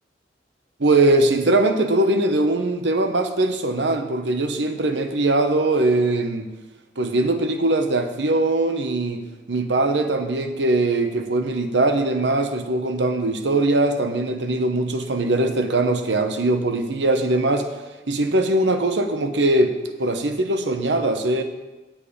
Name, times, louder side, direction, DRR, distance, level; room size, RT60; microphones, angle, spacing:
voice 1, 0.8-6.5 7.0-9.2 9.5-17.7 18.1-21.4, right 2 dB, 80° right, 7 dB, 0.9 m, -21 dB
8.9 x 7.5 x 5.0 m, 1.1 s
head